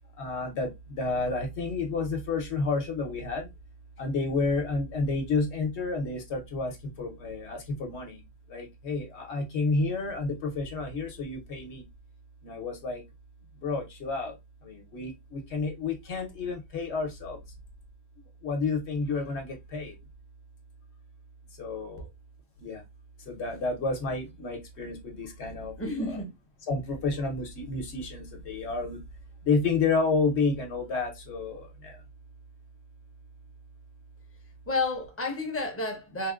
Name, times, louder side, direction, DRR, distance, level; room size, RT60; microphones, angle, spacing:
voice 1, 0.2-3.5 4.0-8.2 8.5-11.8 12.4-13.0 13.6-17.4 18.4-19.9 21.6-22.1 22.6-22.8 23.2-25.7 26.0-26.2 26.7-29.0 29.4-32.0, left 4 dB, 60° left, 1.1 m, -30 dB
voice 2, 25.8-26.3 34.7-36.3, left 2 dB, 15° left, 0.6 m, -30 dB
3.6 x 2.1 x 2.3 m
omnidirectional pair, 1.3 m